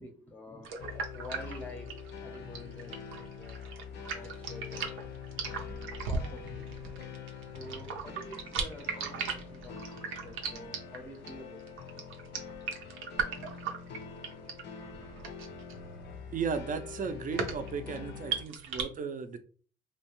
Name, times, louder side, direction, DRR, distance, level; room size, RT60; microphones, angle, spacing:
voice 1, 0.0-3.7 4.1-4.9 5.5-6.7 7.4-12.0, left 1 dB, 10° left, 0.6 m, -49 dB
sound 1, 0.6-18.8, right 5 dB, 85° right, 0.6 m, -38 dB
sound 2, 0.8-18.4, left 6 dB, 60° left, 0.5 m, -45 dB
voice 2, 16.3-19.4, right 5 dB, 40° right, 0.5 m, -35 dB
2.8 x 2.2 x 3.0 m
cardioid pair, 90°, 20 cm